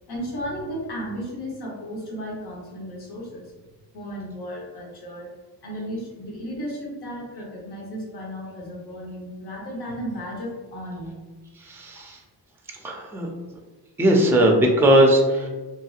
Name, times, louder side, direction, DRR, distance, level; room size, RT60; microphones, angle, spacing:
voice 1, 0.1-3.5 3.9-5.3 5.6-11.2 11.9-12.0, equal, 85° left, -3 dB, 1.0 m, -34 dB
voice 2, 11.6-12.2 12.8-13.3 14.0-15.5, right 1 dB, 5° right, 1 dB, 0.3 m, -18 dB
2.7 x 2.7 x 2.3 m, 1.2 s
wide cardioid pair, 100°, 37 cm